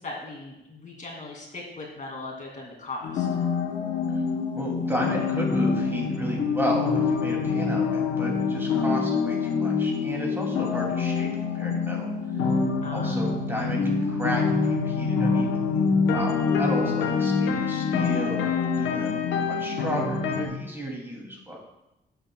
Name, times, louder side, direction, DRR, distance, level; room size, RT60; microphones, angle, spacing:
voice 1, 0.0-3.3 12.8-13.2, left 2 dB, 45° left, -1 dB, 2.6 m, -38 dB
sound 1, 3.0-20.5, left 5 dB, 90° left, 1.0 m, -25 dB
voice 2, 4.5-12.1 12.9-21.6, equal, 10° right, -1 dB, 2.7 m, -33 dB
10.0 x 8.3 x 2.3 m, 0.91 s
cardioid pair, 75°, 19 cm